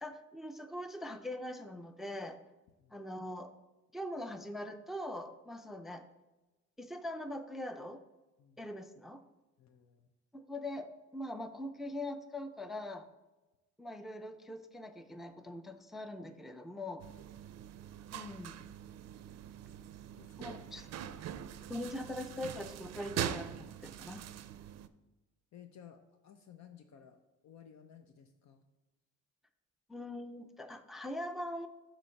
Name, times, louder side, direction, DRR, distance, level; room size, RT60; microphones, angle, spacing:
voice 1, 0.0-2.4 2.9-3.5 3.9-6.1 6.8-8.0 8.6-9.2 10.3-13.1 13.8-17.0 18.1-18.6 20.4-20.8 21.7-24.3 29.9-31.7, left 1 dB, ahead, 9 dB, 0.4 m, -42 dB
voice 2, 9.6-10.1 20.2-20.7 25.5-28.7, left 8 dB, 65° left, 6 dB, 0.7 m, -56 dB
sound 1, 17.0-24.9, right 10 dB, 60° right, 0.5 m, -43 dB
8.7 x 3.1 x 6.4 m, 1.1 s
cardioid pair, 90°, 30 cm